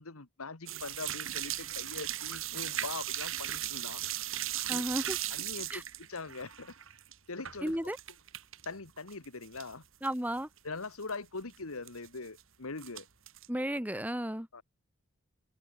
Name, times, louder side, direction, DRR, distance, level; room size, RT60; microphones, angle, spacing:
voice 1, 0.0-4.0 4.6-4.8 5.3-5.7 6.1-6.7 7.3-7.7 8.6-9.8 10.6-13.1 14.5-14.6, left 3 dB, 75° left, 1.6 m, -42 dB
sound 1, 0.7-8.7 9.0-9.7 10.0-10.1 10.6-10.7 10.8-11.1 11.9-12.4 12.8-13.5, right 13 dB, 65° right, 2.8 m, -37 dB
voice 2, 4.7-5.2 5.7-5.8 7.6-8.0 10.0-10.5 13.5-14.5, equal, 5° right, 2.3 m, -33 dB
open air
head